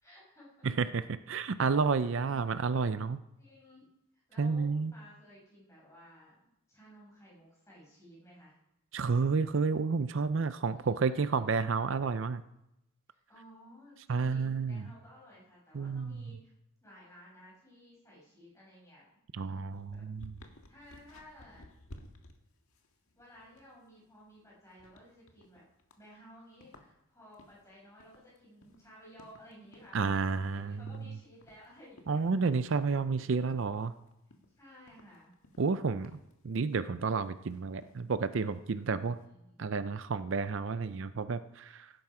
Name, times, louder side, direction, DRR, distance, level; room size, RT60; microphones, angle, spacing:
voice 1, 0.0-0.7 2.0-2.2 3.4-3.8 4.1-8.5 10.6-11.4 13.1-16.5 16.8-19.1 19.4-19.6 19.9-20.0 20.7-21.7 23.1-25.6 26.0-30.1 30.5-32.4 34.6-35.3 38.6-39.6, equal, 15° left, -5 dB, 6.2 m, -56 dB
voice 2, 0.6-3.2 4.4-4.9 8.9-12.4 14.1-14.8 15.7-16.2 19.3-20.3 29.9-30.8 32.1-33.9 35.6-36.2 36.4-39.2 39.6-41.9, right 4 dB, 60° right, 13 dB, 0.5 m, -30 dB
sound 1, 19.7-39.2, left 1 dB, 80° left, 1.7 m, -58 dB
16.5 x 12.0 x 4.9 m, 0.87 s
head